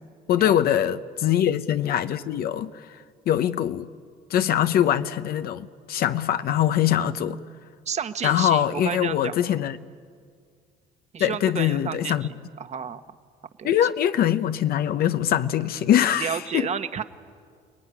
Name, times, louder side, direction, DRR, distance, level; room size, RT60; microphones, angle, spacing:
voice 1, 0.3-2.8 3.3-3.9 4.3-7.4 8.2-9.8 11.2-12.3 13.6-16.7, left 10 dB, 65° left, 0.9 m, -23 dB
voice 2, 7.8-9.6 11.1-12.2 12.6-13.0 13.6-13.7 16.2-17.0, right 7 dB, 40° right, 1.3 m, -31 dB
29.5 x 20.0 x 9.8 m
cardioid pair, 110°, 17 cm